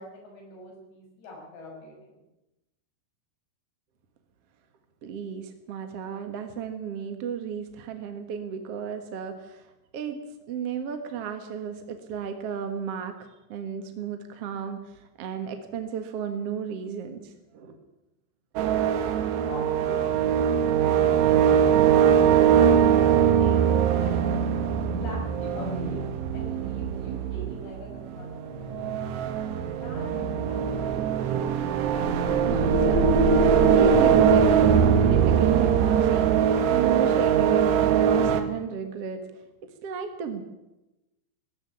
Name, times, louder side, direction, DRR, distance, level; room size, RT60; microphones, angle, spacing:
voice 1, 0.0-2.2 19.4-21.9 22.3-22.8 23.4-23.6 23.9-24.4 24.9-26.0 26.3-29.0 29.7-31.0, left 1 dB, 90° left, -1 dB, 8.3 m, -43 dB
voice 2, 5.0-9.6 9.9-10.2 10.5-13.2 13.5-14.8 15.2-17.2 17.5-17.8 32.5-33.1 33.6-36.3 36.7-39.2 39.8-40.4, right 7 dB, 55° right, 7 dB, 1.8 m, -33 dB
sound 1, 18.6-38.4, right 8 dB, 80° right, 3.7 m, -22 dB
sound 2, 23.6-25.9 28.1-29.5, left 2 dB, 75° left, 5.2 m, -43 dB
sound 3, 31.0-35.9, left 1 dB, 5° right, 3.0 m, -28 dB
18.0 x 15.0 x 9.8 m, 0.97 s
omnidirectional pair, 4.8 m